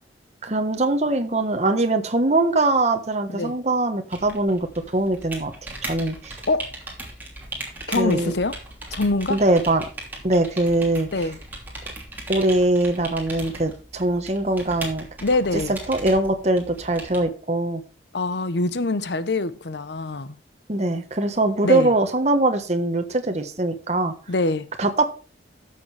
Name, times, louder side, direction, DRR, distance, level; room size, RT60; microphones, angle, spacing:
voice 1, 0.4-4.7 4.9-5.5 5.9-6.4 7.9-8.3 9.3-9.8 10.2-11.1 12.3-15.1 15.7-17.8 20.7-24.1 24.8-25.1, right 2 dB, 35° right, 1.2 m, -22 dB
sound 1, 4.1-17.2, right 2 dB, 10° right, 2.8 m, -38 dB
voice 2, 7.9-8.6 8.9-9.4 11.1-11.4 15.2-15.8 18.1-20.4 21.6-21.9 24.3-24.7, left 2 dB, 70° left, 0.8 m, -24 dB
14.0 x 6.8 x 3.3 m
head